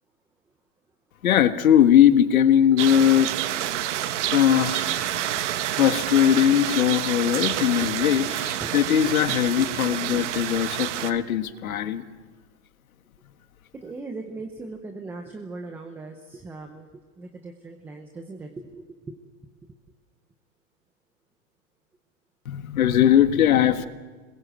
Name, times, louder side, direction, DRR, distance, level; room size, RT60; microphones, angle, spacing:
voice 1, 1.2-3.3 4.3-5.0 5.8-12.0 22.5-23.9, left 10 dB, 90° left, 9 dB, 1.7 m, -20 dB
sound 1, 2.8-11.1, right 12 dB, 60° right, 1.3 m, -28 dB
voice 2, 9.6-10.4 11.0-11.6 13.7-19.2, right 3 dB, 5° right, 4 dB, 0.7 m, -39 dB
26.5 x 21.0 x 7.7 m, 1.4 s
supercardioid pair, 165°, 41 cm